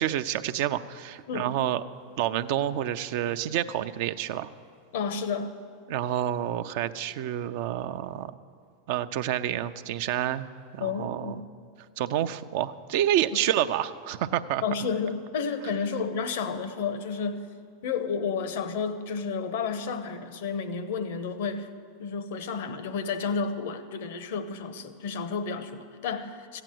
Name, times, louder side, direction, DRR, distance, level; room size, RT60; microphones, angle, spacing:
voice 1, 0.0-1.8 2.2-4.5 5.9-8.3 8.9-10.5 10.7-11.3 12.0-14.6, right 11 dB, 60° right, 10 dB, 0.6 m, -28 dB
voice 2, 4.9-5.6 10.8-11.4 14.6-17.5 17.8-21.7 22.0-26.6, left 5 dB, 70° left, 11 dB, 0.9 m, -31 dB
15.0 x 9.0 x 7.7 m, 2.2 s
hypercardioid pair, 100°, 0 cm